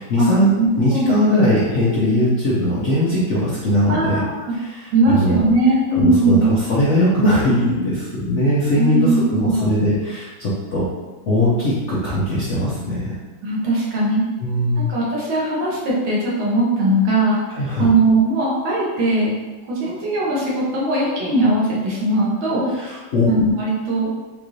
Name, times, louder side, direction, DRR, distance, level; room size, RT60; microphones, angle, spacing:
voice 1, 0.0-0.5 0.8-4.2 4.6-5.4 5.9-10.9 11.3-13.1 14.4-14.9 17.5-17.9 22.7-23.3, left 1 dB, 55° left, -8 dB, 0.8 m, -20 dB
voice 2, 0.6-1.4 3.9-4.5 4.9-6.5 8.8-9.7 13.4-14.2 14.9-17.4 17.8-19.3 19.7-22.7 23.3-24.1, right 2 dB, 75° right, -6 dB, 1.8 m, -19 dB
5.2 x 2.5 x 3.1 m, 1.2 s
omnidirectional pair, 2.2 m